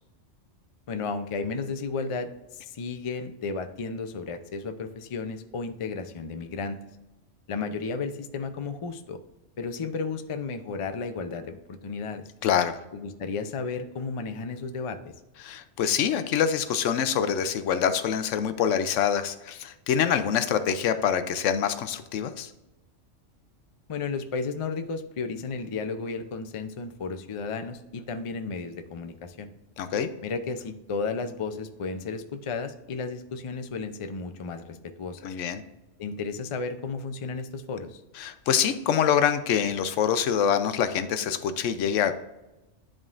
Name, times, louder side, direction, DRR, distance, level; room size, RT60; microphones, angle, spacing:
voice 1, 0.9-6.8 7.5-9.2 9.6-12.2 12.9-15.0 23.9-29.5 30.2-35.2 36.0-38.0, left 4 dB, 55° left, 8 dB, 0.3 m, -33 dB
voice 2, 12.4-12.8 15.4-22.5 29.8-30.1 35.2-35.6 38.2-42.2, left 8 dB, 80° left, 10 dB, 0.9 m, -25 dB
11.0 x 3.7 x 2.4 m, 1.0 s
omnidirectional pair, 1.3 m